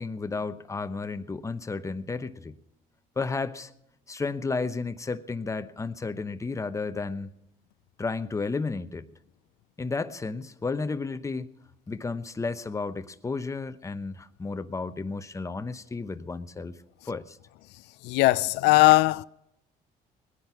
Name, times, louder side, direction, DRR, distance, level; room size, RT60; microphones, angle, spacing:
voice 1, 0.0-2.5 3.2-3.7 4.1-7.3 8.0-9.1 9.8-11.5 11.9-16.8 17.0-17.4, left 4 dB, 20° left, 0.9 m, -32 dB
voice 2, 18.0-19.2, left 20 dB, 85° left, 0.4 m, -19 dB
20.0 x 10.5 x 5.7 m
cardioid pair, 110°, 17 cm